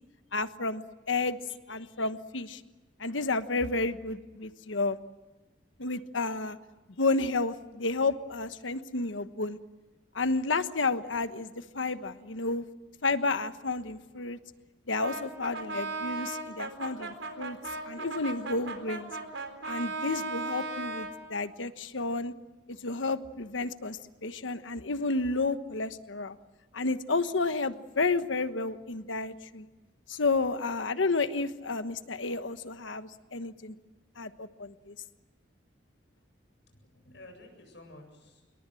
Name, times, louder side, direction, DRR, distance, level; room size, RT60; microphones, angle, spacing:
voice 1, 0.3-0.8 1.1-1.4 1.7-2.6 3.0-5.0 5.8-6.6 7.0-9.6 10.1-12.6 13.0-14.4 14.9-17.6 17.8-19.1 19.6-22.3 22.8-26.4 26.7-29.7 30.1-33.7 34.2-34.9, left 3 dB, 90° left, 11 dB, 1.2 m, -31 dB
Brass instrument, 15.0-21.2, right 3 dB, 85° right, 4.1 m, -37 dB
voice 2, 36.6-38.4, left 1 dB, 65° left, 4 dB, 7.9 m, -52 dB
28.0 x 22.5 x 7.7 m, 1.2 s
head